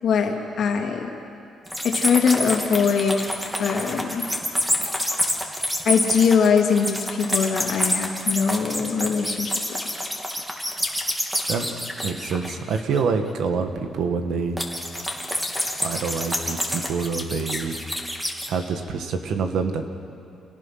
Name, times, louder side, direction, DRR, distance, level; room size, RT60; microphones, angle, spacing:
voice 1, 0.0-1.2 1.8-3.2 3.6-4.3 5.8-9.8, left 6 dB, 65° left, 2 dB, 2.6 m, -22 dB
sound 1, 1.7-13.0 14.6-18.5, equal, 5° right, 2.7 m, -27 dB
voice 2, 12.0-14.6 15.8-17.8 18.5-19.9, right 5 dB, 75° right, 7 dB, 1.7 m, -26 dB
28.0 x 18.0 x 5.9 m, 2.6 s
cardioid pair, 90°, 0 cm